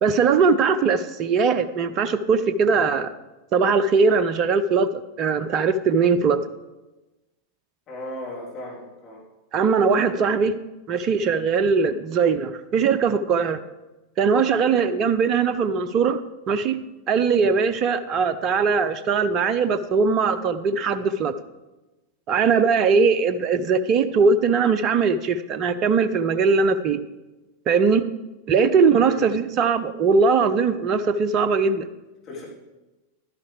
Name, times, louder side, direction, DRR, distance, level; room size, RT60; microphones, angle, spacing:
voice 1, 0.0-3.1 3.5-6.4 9.5-10.5 10.9-13.6 14.2-16.2 16.5-16.8 17.1-21.3 22.3-27.0 27.7-28.0 28.5-31.9, right 5 dB, 35° right, 13 dB, 0.5 m, -20 dB
voice 2, 7.9-9.2 13.1-13.2 29.0-29.3 32.3-32.5, left 1 dB, 30° left, -5 dB, 3.6 m, -36 dB
11.5 x 10.5 x 3.4 m, 1.1 s
figure-of-eight pair, 90°, 0 cm